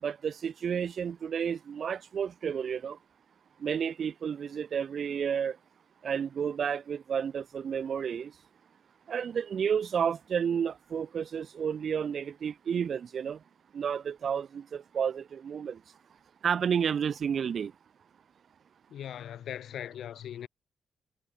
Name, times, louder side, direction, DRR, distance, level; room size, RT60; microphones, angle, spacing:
voice 1, 0.0-3.0 3.6-5.6 6.0-8.3 9.1-13.4 13.7-15.8 16.4-17.7, right 7 dB, 50° right, 6.1 m, -31 dB
voice 2, 18.9-20.5, left 10 dB, 75° left, 3.4 m, -39 dB
wide cardioid pair, 150°, 0 cm